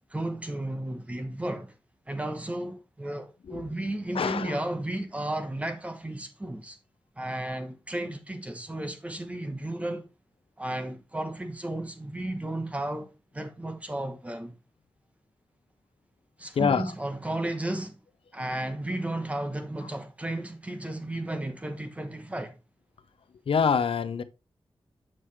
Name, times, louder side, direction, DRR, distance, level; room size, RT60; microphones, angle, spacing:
voice 1, 0.1-1.7 2.1-6.8 7.2-10.1 10.6-14.5 16.4-18.0 18.3-22.6, right 1 dB, 15° right, 1.0 m, -33 dB
voice 2, 4.1-4.6 16.5-16.9 23.5-24.2, left 6 dB, 75° left, 0.6 m, -25 dB
7.5 x 6.3 x 3.2 m
wide cardioid pair, 160°, 10 cm